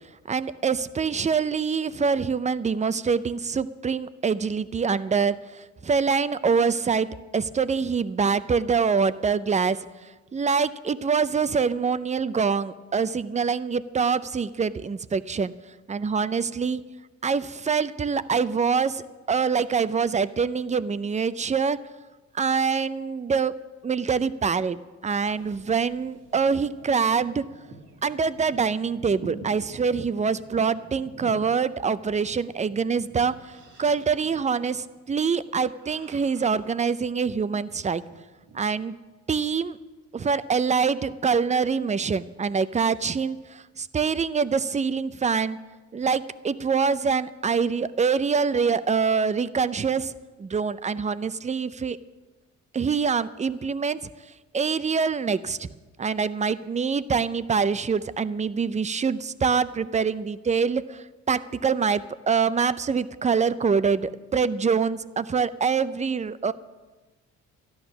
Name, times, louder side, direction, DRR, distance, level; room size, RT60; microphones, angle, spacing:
voice 1, 0.3-15.5 15.9-16.8 17.2-21.8 22.3-23.5 23.8-27.4 28.0-38.0 38.5-39.0 39.3-39.8 40.1-45.6 45.9-50.1 50.4-52.0 52.7-54.1 54.5-55.7 56.0-66.5, right 5 dB, 25° right, 15 dB, 0.5 m, -25 dB
sound 1, 25.1-37.5 37.9-38.7, right 4 dB, 85° right, 2.0 m, -48 dB
13.0 x 11.0 x 5.9 m, 1.2 s
cardioid pair, 90°, 30 cm